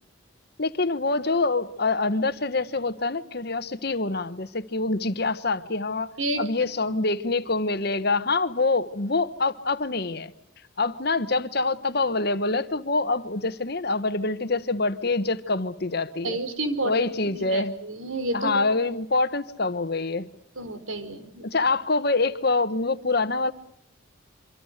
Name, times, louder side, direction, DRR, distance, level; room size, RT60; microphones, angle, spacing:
voice 1, 0.6-6.1 6.4-10.3 10.8-16.4 16.8-17.7 18.3-20.3 21.4-23.5, left 3 dB, 50° left, 1.4 m, -25 dB
voice 2, 16.2-18.6 20.6-21.5, right 2 dB, 90° right, 4.3 m, -30 dB
26.0 x 26.0 x 6.7 m
head